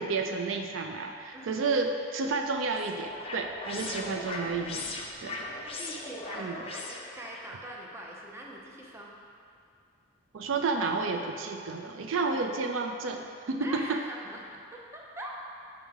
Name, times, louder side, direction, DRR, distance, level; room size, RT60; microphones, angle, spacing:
voice 1, 0.0-4.9 5.2-5.4 6.4-6.6 10.3-14.0, right 4 dB, 75° right, 4 dB, 0.4 m, -31 dB
voice 2, 1.3-1.6 5.6-9.1 13.6-15.3, right 1 dB, 15° right, -2 dB, 0.6 m, -42 dB
sound 1, 2.3-7.5, left 3 dB, 30° left, 0.5 m, -39 dB
5.5 x 4.7 x 4.7 m, 2.4 s
head